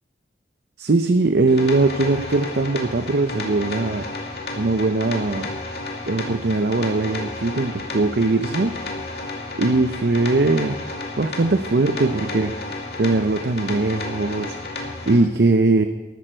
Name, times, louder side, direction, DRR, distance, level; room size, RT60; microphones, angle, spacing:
voice 1, 0.8-4.1 4.6-5.5 6.0-8.7 9.6-10.8 11.2-12.5 13.0-15.8, right 3 dB, 70° right, 8 dB, 0.6 m, -20 dB
sound 1, 1.5-15.2, left 2 dB, 60° left, 2.4 m, -32 dB
14.0 x 13.0 x 4.5 m, 1.4 s
head